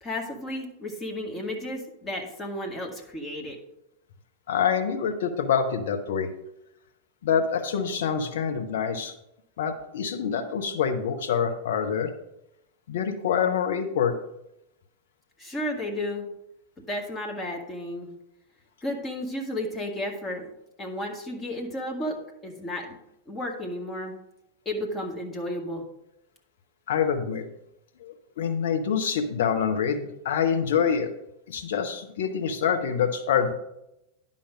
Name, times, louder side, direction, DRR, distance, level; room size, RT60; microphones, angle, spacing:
voice 1, 0.0-3.6 15.4-16.3 16.9-18.1 18.8-20.5 20.8-23.0 23.3-24.2 24.7-25.9, left 1 dB, 20° left, 1 dB, 1.9 m, -33 dB
voice 2, 4.5-6.3 7.2-9.1 9.6-12.1 12.9-14.2 26.9-27.4 28.0-31.1 31.5-33.5, left 7 dB, 60° left, 5 dB, 1.0 m, -26 dB
10.5 x 5.7 x 4.9 m, 0.84 s
figure-of-eight pair, 90°, 0 cm